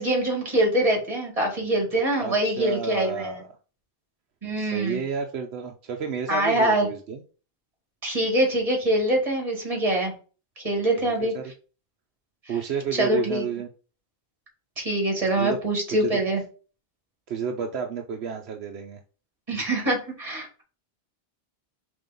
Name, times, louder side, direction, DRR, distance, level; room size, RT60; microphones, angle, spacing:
voice 1, 0.0-3.3 4.4-5.0 6.3-6.9 8.0-10.1 10.6-11.3 13.0-13.5 14.8-16.4 19.5-20.6, right 1 dB, 35° right, 1 dB, 2.2 m, -24 dB
voice 2, 2.2-3.5 4.6-7.2 11.0-11.4 12.5-13.7 15.4-15.6 15.9-16.2 17.3-19.0, right 6 dB, 80° right, 4 dB, 1.0 m, -31 dB
5.2 x 3.4 x 5.2 m, 0.37 s
omnidirectional pair, 1.1 m